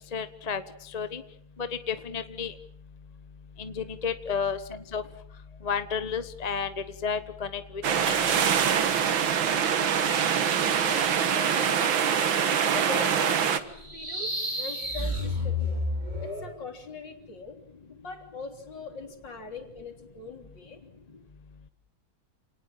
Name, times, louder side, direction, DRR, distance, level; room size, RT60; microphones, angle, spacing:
voice 1, 0.1-0.6 0.9-1.2 1.6-2.5 3.6-5.0 5.6-8.4, left 6 dB, 25° left, 10 dB, 1.1 m, -32 dB
sound 1, 7.8-13.6, right 7 dB, 75° right, 2.2 m, -24 dB
voice 2, 9.7-10.2 10.7-12.3 12.6-14.3 14.6-15.8 16.2-17.6 17.9-20.8, left 4 dB, 65° left, 4 dB, 4.2 m, -42 dB
sound 2, 13.7-16.6, left 1 dB, 20° right, 3.7 m, -30 dB
29.0 x 19.0 x 7.6 m, 0.67 s
omnidirectional pair, 2.1 m